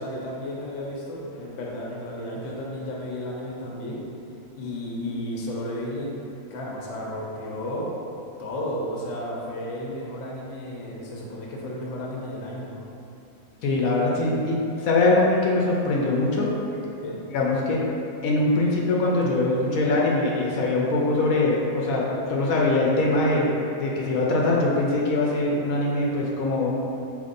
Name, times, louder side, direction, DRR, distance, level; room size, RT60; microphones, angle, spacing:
voice 1, 0.0-4.0 4.6-6.2 6.5-7.9 8.4-12.8 17.0-17.2, left 1 dB, 65° left, -3 dB, 1.0 m, -33 dB
voice 2, 13.6-16.5 17.3-17.8 18.2-26.7, left 2 dB, 85° left, -3 dB, 1.0 m, -22 dB
5.1 x 3.2 x 2.6 m, 2.8 s
omnidirectional pair, 1.4 m